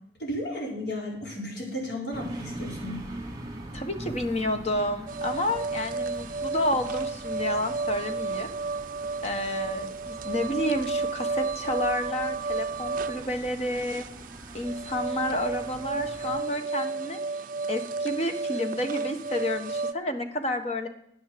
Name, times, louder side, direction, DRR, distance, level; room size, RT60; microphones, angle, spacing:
voice 1, 0.2-3.0, left 1 dB, 75° left, -2 dB, 4.8 m, -34 dB
sound 1, 2.1-16.4, right 1 dB, 25° right, 2.3 m, -43 dB
voice 2, 3.7-8.5 9.2-14.1 14.5-17.2 17.7-20.9, left 1 dB, 35° left, 6 dB, 1.3 m, -30 dB
sound 2, 5.1-19.9, right 3 dB, 50° right, 0.4 m, -32 dB
10.0 x 9.8 x 6.8 m, 0.72 s
head